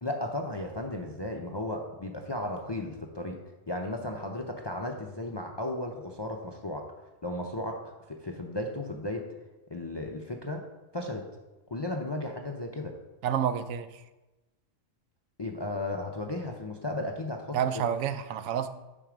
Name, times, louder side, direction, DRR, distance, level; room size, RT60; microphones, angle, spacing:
voice 1, 0.0-3.4 3.7-6.9 7.2-7.8 8.1-9.3 9.7-10.6 10.9-11.2 11.7-13.0 15.4-17.8, left 1 dB, 35° left, 2 dB, 0.4 m, -35 dB
voice 2, 13.2-14.0 17.5-18.7, right 8 dB, 90° right, 11 dB, 1.0 m, -29 dB
9.2 x 4.4 x 5.0 m, 1.1 s
omnidirectional pair, 1.3 m